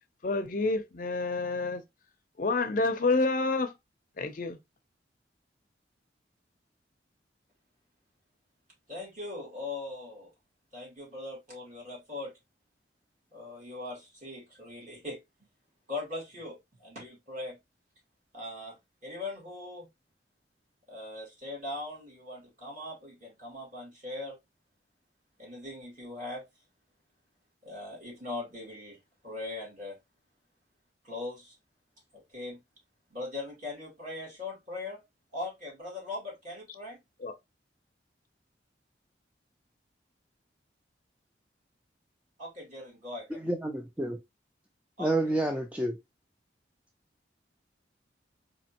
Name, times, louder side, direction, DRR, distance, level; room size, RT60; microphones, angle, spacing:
voice 1, 0.2-1.8 2.4-3.7 4.2-4.6 37.2-37.3, left 3 dB, 50° left, 0.5 m, -28 dB
voice 2, 8.9-10.3 10.7-12.3 13.3-15.2 15.9-17.6 18.3-19.9 20.9-24.4 25.4-26.4 27.6-29.0 29.2-30.0 31.0-31.5 32.1-32.6 33.1-35.0 35.3-37.0 42.4-43.4 45.0-45.3, left 2 dB, 45° right, 2.5 m, -40 dB
voice 3, 43.3-44.2 45.0-46.0, right 1 dB, 5° right, 0.3 m, -29 dB
4.1 x 2.8 x 2.8 m
head